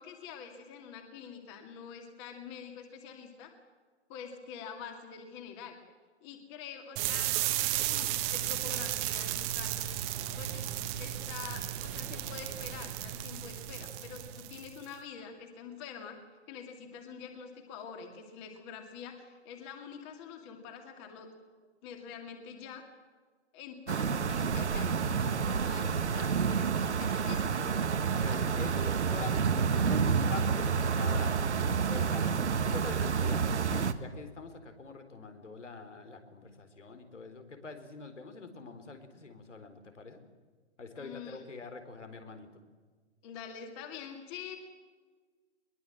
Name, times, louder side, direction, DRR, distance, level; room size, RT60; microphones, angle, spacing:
voice 1, 0.0-3.5 4.1-5.8 6.2-9.9 10.4-10.7 11.0-16.2 16.5-21.3 21.8-22.8 23.5-25.1 25.4-27.6 41.0-41.4 43.2-44.6, left 7 dB, 25° left, 5 dB, 2.4 m, -46 dB
sound 1, 7.0-14.9, right 13 dB, 15° right, 1.1 m, -34 dB
sound 2, 23.9-33.9, right 6 dB, 70° right, 1.6 m, -29 dB
voice 2, 28.2-31.5 31.9-33.4 33.7-40.2 40.8-42.5, left 4 dB, 85° left, 7 dB, 4.1 m, -45 dB
22.0 x 21.5 x 7.8 m, 1.5 s
hypercardioid pair, 150°, 35 cm